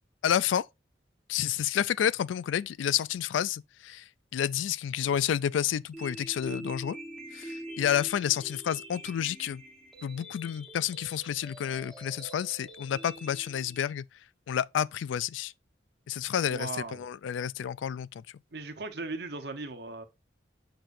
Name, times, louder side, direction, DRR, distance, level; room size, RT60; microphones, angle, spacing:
voice 1, 0.2-0.7 1.3-4.0 4.3-7.0 7.3-9.6 10.0-14.0 14.5-15.5 16.1-18.2, left 9 dB, 80° left, 0.3 m, -30 dB
sound 1, 5.9-13.9, right 1 dB, 5° left, 1.2 m, -45 dB
voice 2, 16.5-17.1 18.5-20.0, right 3 dB, 60° right, 1.0 m, -38 dB
6.8 x 5.9 x 2.6 m
head